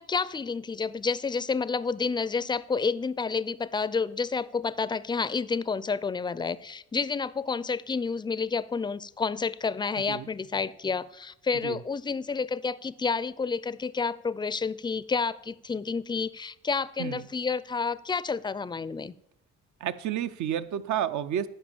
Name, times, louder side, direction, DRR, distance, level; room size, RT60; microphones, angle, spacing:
voice 1, 0.0-19.1, left 5 dB, 15° left, 0.4 m, -30 dB
voice 2, 19.8-21.5, right 10 dB, 70° right, 0.7 m, -30 dB
10.0 x 5.2 x 7.1 m
cardioid pair, 90°, 30 cm